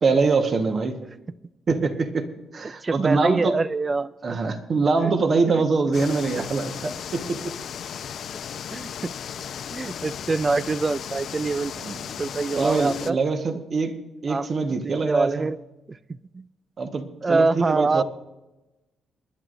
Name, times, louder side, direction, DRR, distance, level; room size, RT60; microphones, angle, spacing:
voice 1, 0.0-1.0 1.7-3.5 4.2-7.5 11.8-12.0 12.5-15.5 16.8-18.0, right 4 dB, 45° right, 6 dB, 1.3 m, -24 dB
voice 2, 2.8-4.1 5.0-5.1 5.5-5.6 6.4-6.5 8.7-9.1 9.7-11.7 12.2-13.2 14.3-14.5 14.8-15.6 15.9-16.0 16.3-16.4 17.2-18.0, right 3 dB, 30° right, 17 dB, 0.4 m, -25 dB
sound 1, 5.9-13.1, left 8 dB, 65° left, 0.6 m, -35 dB
28.5 x 11.0 x 2.6 m, 1.0 s
cardioid pair, 90°, 0 cm